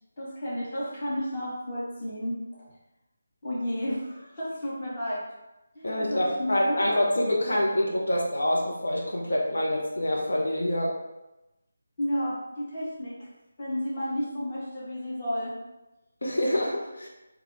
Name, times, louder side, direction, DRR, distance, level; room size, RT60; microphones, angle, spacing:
voice 1, 0.2-2.4 3.4-5.2 5.7-7.0 12.0-13.3 13.6-15.5, equal, 40° left, -7 dB, 1.4 m, -32 dB
voice 2, 5.8-11.0 16.2-17.1, left 1 dB, 80° left, -2 dB, 0.8 m, -26 dB
3.9 x 2.3 x 3.2 m, 0.97 s
figure-of-eight pair, 165°, 0 cm